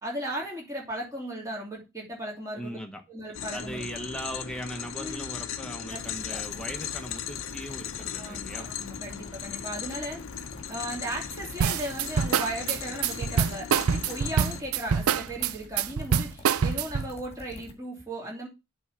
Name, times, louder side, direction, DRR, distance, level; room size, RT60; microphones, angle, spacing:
voice 1, 0.0-2.8 3.1-3.9 5.0-5.2 5.9-6.0 6.3-6.4 8.2-10.2 10.7-18.5, right 1 dB, 15° right, -3 dB, 2.8 m, -36 dB
voice 2, 2.6-3.0 3.5-8.7, equal, 5° left, 4 dB, 1.1 m, -39 dB
sound 1, 3.3-14.6, left 8 dB, 70° left, 0.6 m, -37 dB
sound 2, 5.9-17.7, left 1 dB, 30° left, 1.6 m, -48 dB
sound 3, 11.6-17.1, right 7 dB, 90° right, 0.5 m, -25 dB
8.0 x 3.7 x 5.8 m, 0.25 s
head